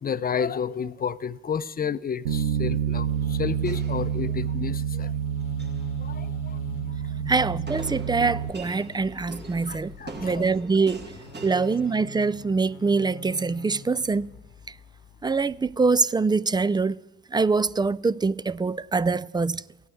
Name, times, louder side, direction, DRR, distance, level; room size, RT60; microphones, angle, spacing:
voice 1, 0.0-5.1 6.0-7.3 9.6-10.5, left 7 dB, 30° left, 0.7 m, -31 dB
Bass guitar, 2.3-8.5, right 9 dB, 85° right, 0.7 m, -28 dB
sound 1, 2.7-15.8, left 4 dB, 75° left, 1.1 m, -46 dB
sound 2, 3.6-4.7 5.4-5.9 7.7-12.5, right 3 dB, 35° right, 2.3 m, -43 dB
voice 2, 7.3-9.9 10.2-11.1 11.4-14.3 15.2-17.0 17.3-19.6, right 4 dB, 15° right, 0.4 m, -24 dB
16.0 x 9.1 x 7.7 m
hypercardioid pair, 50°, 30 cm